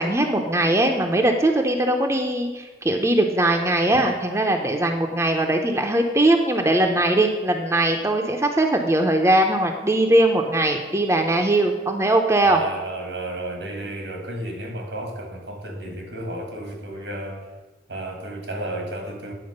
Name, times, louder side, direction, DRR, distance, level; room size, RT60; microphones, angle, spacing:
voice 1, 0.0-12.6, right 1 dB, 15° right, 3 dB, 0.6 m, -20 dB
voice 2, 12.4-17.5 17.9-19.3, right 1 dB, 85° right, 3 dB, 1.8 m, -32 dB
9.7 x 4.5 x 6.6 m, 1.3 s
head